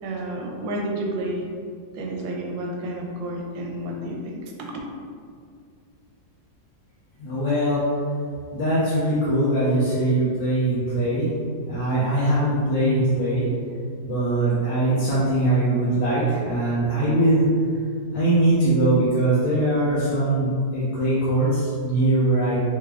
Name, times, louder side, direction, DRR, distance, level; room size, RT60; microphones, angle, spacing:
voice 1, 0.0-1.5 1.9-4.7, right 1 dB, 80° right, 0 dB, 1.3 m, -30 dB
voice 2, 7.2-7.8 8.5-11.3 11.7-13.5 14.0-17.5 18.1-22.6, right 1 dB, 75° left, -10 dB, 1.5 m, -21 dB
3.8 x 2.2 x 3.3 m, 2.2 s
omnidirectional pair, 2.1 m